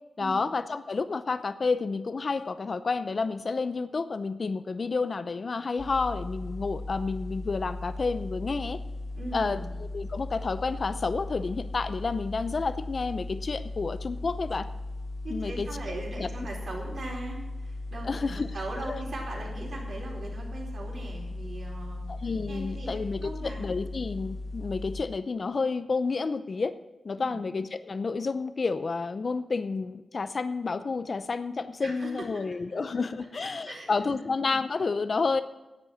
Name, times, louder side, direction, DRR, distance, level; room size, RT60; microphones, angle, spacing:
voice 1, 0.2-8.8 9.3-14.7 15.3-15.7 16.2-16.3 18.0-18.5 18.8-19.0 22.1-26.7 27.0-35.4, left 4 dB, 55° left, 12 dB, 0.6 m, -30 dB
sound 1, 5.8-25.0, left 2 dB, 25° left, 1.2 m, -37 dB
voice 2, 9.1-9.7 15.2-22.0 22.5-23.7 27.2-27.4 31.8-32.8 33.6-34.3, right 2 dB, 70° right, -2 dB, 4.2 m, -40 dB
10.5 x 8.2 x 7.6 m, 1.0 s
cardioid pair, 65°, 0 cm